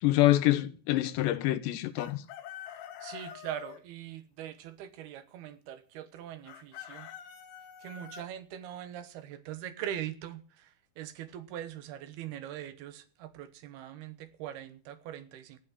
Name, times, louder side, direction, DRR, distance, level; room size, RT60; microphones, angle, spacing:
voice 1, 0.0-2.2, left 15 dB, 85° left, 3.2 m, -26 dB
Chicken rooster, 2.0-3.8 6.5-8.3, left 10 dB, 70° left, 2.9 m, -45 dB
voice 2, 3.0-7.1 7.8-15.6, right 11 dB, 70° right, 3.0 m, -42 dB
15.0 x 8.4 x 7.6 m
omnidirectional pair, 5.0 m